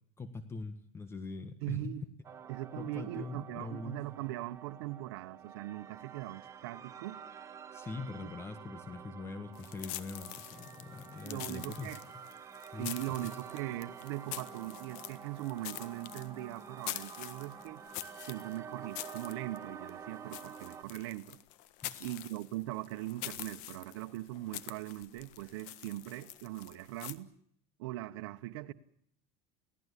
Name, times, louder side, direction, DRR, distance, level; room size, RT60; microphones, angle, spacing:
voice 1, 0.2-2.0 2.8-4.0 7.7-12.0 12.7-13.0 13.2-13.3 21.8-22.1, left 3 dB, 20° left, 1.6 m, -43 dB
voice 2, 1.6-2.0 2.5-7.2 8.2-8.3 11.2-12.0 12.8-17.8 18.2-21.4 22.0-27.3 27.8-28.7, right 16 dB, 85° right, 1.3 m, -40 dB
sound 1, 2.2-20.8, right 7 dB, 20° right, 1.6 m, -49 dB
sound 2, 9.5-27.1, left 14 dB, 65° left, 1.5 m, -46 dB
29.5 x 17.5 x 8.4 m
cardioid pair, 145°, 14 cm